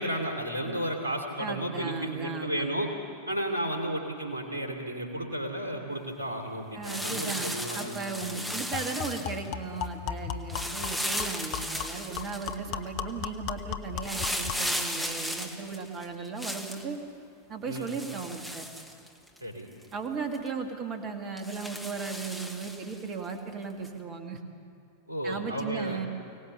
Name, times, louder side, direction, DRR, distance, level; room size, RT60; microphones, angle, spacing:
voice 1, 0.0-2.9 3.3-8.0 8.2-8.6 17.7-17.9 19.4-19.7 25.1-26.0, right 1 dB, 75° right, 3 dB, 3.0 m, -33 dB
voice 2, 1.4-2.7 6.7-17.0 17.5-18.7 19.9-24.4 25.2-26.1, right 5 dB, 35° right, 5 dB, 2.2 m, -36 dB
sound 1, 6.8-9.5 10.5-12.5 14.0-16.8 17.7-19.4 19.8-19.9 20.3-20.5 21.4-23.0 23.8-23.9, equal, 5° right, 1.6 m, -35 dB
sound 2, 7.8-7.9 8.2-8.3 8.7-14.7, left 9 dB, 45° left, 1.0 m, -37 dB
24.0 x 18.0 x 7.0 m, 2.7 s
figure-of-eight pair, 90°, 0 cm